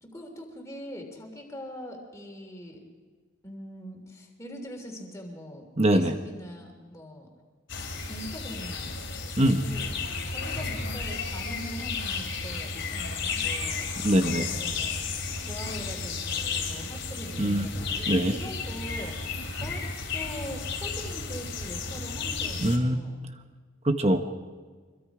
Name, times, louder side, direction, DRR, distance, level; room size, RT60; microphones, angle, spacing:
voice 1, 0.0-2.8 3.4-7.3 8.1-8.9 9.4-13.9 14.2-15.0 15.4-19.2 19.6-19.9 20.1-23.3, equal, 15° left, 1 dB, 3.3 m, -42 dB
voice 2, 5.8-6.2 9.4-9.6 14.0-14.4 17.4-17.7 18.1-18.3 22.6-23.1 23.8-24.2, right 1 dB, 30° right, 7 dB, 1.0 m, -23 dB
sound 1, 7.7-22.8, left 4 dB, 60° left, 2.9 m, -33 dB
25.0 x 22.5 x 5.0 m, 1.5 s
head